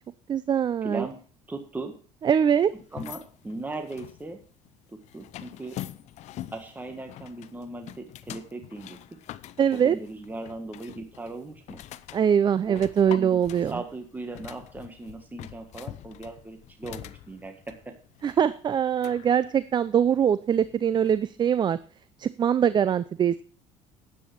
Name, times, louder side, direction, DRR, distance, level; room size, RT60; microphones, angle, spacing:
voice 1, 0.3-1.1 2.2-2.7 9.6-10.0 12.1-13.8 18.2-21.8 22.2-23.4, right 8 dB, 35° right, 16 dB, 0.5 m, -23 dB
voice 2, 0.8-1.2 1.5-1.9 2.9-4.4 4.9-5.8 6.5-9.0 9.7-11.8 12.7-13.4 13.7-17.9 18.3-18.4, right 2 dB, 15° right, 5 dB, 1.6 m, -38 dB
sound 1, 2.8-21.3, left 13 dB, 60° left, 0.7 m, -44 dB
10.0 x 8.6 x 5.9 m, 0.40 s
supercardioid pair, 105°, 13 cm